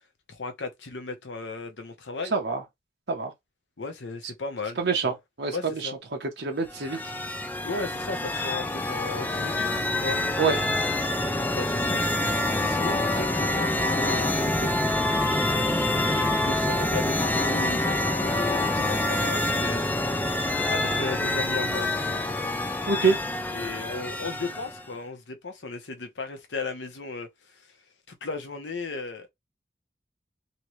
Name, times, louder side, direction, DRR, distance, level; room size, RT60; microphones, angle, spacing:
voice 1, 0.3-2.3 3.8-4.8 5.0-5.1 5.5-5.9 7.6-10.2 11.5-12.1 12.6-14.8 15.5-19.8 20.2-20.4 20.7-21.9 23.5-27.3 27.5-27.6 28.1-29.3, left 3 dB, 90° left, 0.8 m, -36 dB
voice 2, 2.3-2.6 3.1-3.3 4.8-7.0 10.4-10.6 22.9-23.2, right 4 dB, 75° right, 0.8 m, -26 dB
sound 1, 6.7-24.9, left 2 dB, 10° left, 0.3 m, -26 dB
3.0 x 2.7 x 3.1 m
head